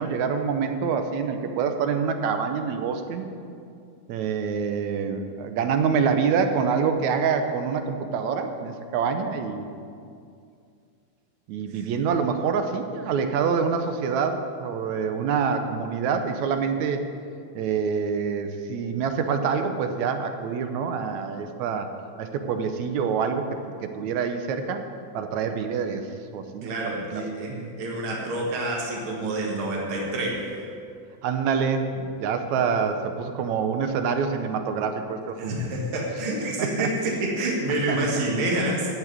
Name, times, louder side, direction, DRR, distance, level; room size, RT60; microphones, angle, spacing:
voice 1, 0.0-3.3 4.1-9.7 11.5-17.0 17.6-21.9 22.2-23.5 24.0-24.8 25.1-26.0 26.3-26.7 27.5-27.7 31.2-35.6 36.6-36.9 37.9-38.0, right 6 dB, 80° right, 7 dB, 2.2 m, -26 dB
voice 2, 26.6-30.5 35.4-38.9, right 1 dB, 50° right, -2 dB, 2.5 m, -28 dB
13.5 x 6.3 x 9.3 m, 2.4 s
omnidirectional pair, 3.3 m